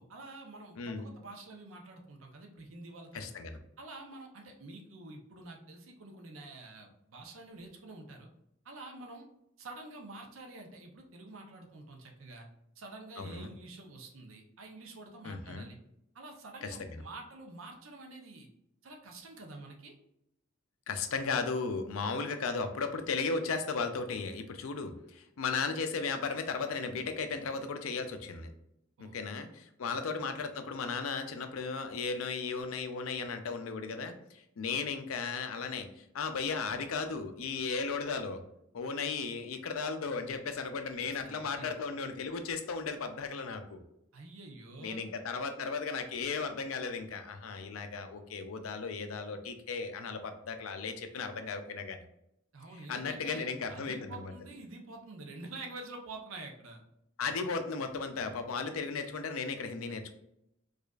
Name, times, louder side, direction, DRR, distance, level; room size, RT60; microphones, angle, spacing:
voice 1, 0.0-3.3 3.8-8.3 8.6-9.3 9.6-12.5 12.8-15.8 16.1-18.5 18.8-19.9 29.0-29.2 29.8-29.9 34.7-34.8 41.2-41.7 44.1-45.0 52.5-56.8, right 2 dB, 75° right, 2 dB, 0.7 m, -48 dB
voice 2, 0.8-1.1 3.1-3.6 13.2-13.5 15.2-15.7 16.6-17.0 20.9-28.5 29.0-38.4 38.7-43.8 44.8-52.0 52.9-54.3 57.2-60.1, left 4 dB, 85° left, 7 dB, 0.5 m, -35 dB
4.8 x 2.4 x 2.4 m, 0.80 s
head